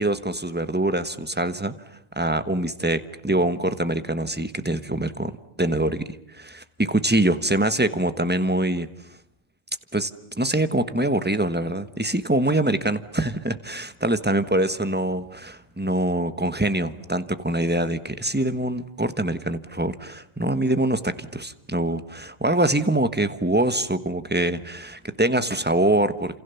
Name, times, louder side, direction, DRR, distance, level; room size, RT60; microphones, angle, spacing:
voice 1, 0.0-1.8 2.1-8.9 9.9-10.1 10.4-26.4, right 1 dB, 10° right, 11 dB, 1.3 m, -24 dB
30.0 x 28.0 x 7.1 m, 0.68 s
omnidirectional pair, 1.0 m